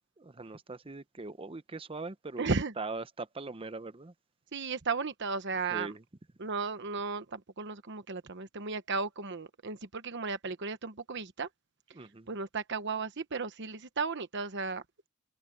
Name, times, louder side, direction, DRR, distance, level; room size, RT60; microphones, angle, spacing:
voice 1, 0.2-2.5 2.8-4.1 5.7-6.0 11.9-12.3, right 3 dB, 25° right, 0.7 m, -41 dB
voice 2, 2.4-2.7 4.5-5.9 6.4-11.5 12.3-14.8, right 4 dB, 60° right, 1.1 m, -35 dB
head